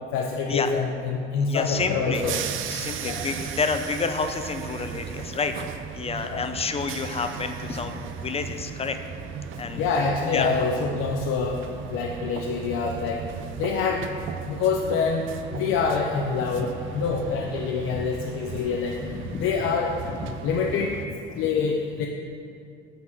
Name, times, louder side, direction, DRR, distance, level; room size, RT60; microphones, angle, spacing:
voice 1, 0.1-2.4 3.0-3.2 6.3-6.4 9.8-11.6 11.9-13.2 13.6-14.1 14.5-19.0 19.4-19.9 20.4-20.9 21.4-22.1, left 5 dB, 90° left, 0 dB, 0.6 m, -26 dB
voice 2, 1.5-2.2 2.7-5.6 5.9-9.0 9.5-9.9 10.3-10.6 16.6-16.7 18.5-18.7 19.1-19.5 20.0-20.5, left 4 dB, 30° left, 7 dB, 0.6 m, -29 dB
sound 1, 1.7-21.1, right 7 dB, 70° right, 0.5 m, -36 dB
9.3 x 4.1 x 5.9 m, 2.4 s
cardioid pair, 100°, 21 cm